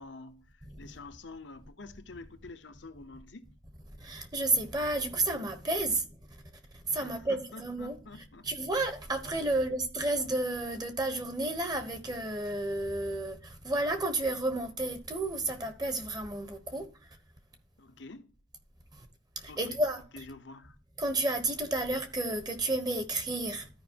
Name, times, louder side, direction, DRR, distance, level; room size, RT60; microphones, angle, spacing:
voice 1, 0.0-3.5 7.0-8.5 17.8-18.3 19.5-19.8 20.1-20.8, left 3 dB, 75° left, 0.9 m, -48 dB
voice 2, 4.0-6.1 6.7-8.0 8.4-16.9 19.0-19.1 19.4-20.0 21.0-23.7, right 2 dB, 20° right, 1.0 m, -31 dB
13.5 x 5.1 x 2.8 m
head